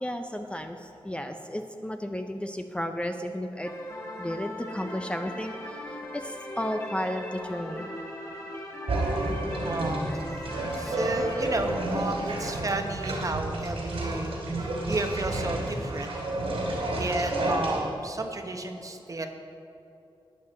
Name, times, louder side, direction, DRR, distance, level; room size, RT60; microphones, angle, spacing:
voice 1, 0.0-3.7 4.2-7.9, equal, 10° left, 5 dB, 0.5 m, -33 dB
sound 1, 3.6-11.8, left 1 dB, 30° left, 2.3 m, -39 dB
sound 2, 8.9-17.8, right 1 dB, 85° right, 2.8 m, -30 dB
voice 2, 9.6-10.3 10.7-16.1 16.9-19.3, right 2 dB, 35° right, 5 dB, 1.0 m, -32 dB
14.0 x 9.5 x 4.3 m, 2.7 s
wide cardioid pair, 95°, 9 cm